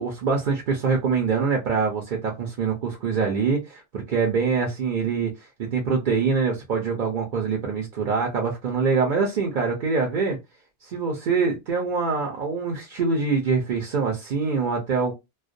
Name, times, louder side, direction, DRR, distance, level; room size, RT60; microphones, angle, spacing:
voice 1, 0.0-5.3 5.6-10.4 10.8-15.1, right 5 dB, 55° right, 0.7 m, -24 dB
2.3 x 2.1 x 2.5 m
omnidirectional pair, 1.1 m